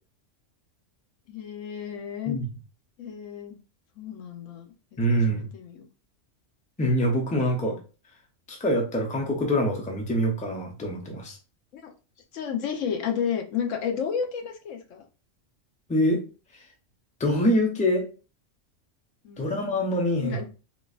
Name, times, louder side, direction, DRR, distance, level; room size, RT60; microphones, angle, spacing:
voice 1, 1.3-2.4 3.0-3.6 4.0-4.7 5.2-5.9 11.7-11.9 12.3-15.0 19.2-19.6 20.2-20.4, left 7 dB, 80° left, 4 dB, 1.0 m, -31 dB
voice 2, 5.0-5.5 6.8-7.8 8.5-11.4 15.9-16.2 17.2-18.1 19.4-20.4, equal, 10° left, 1 dB, 0.4 m, -25 dB
4.0 x 2.3 x 2.4 m, 0.34 s
omnidirectional pair, 1.3 m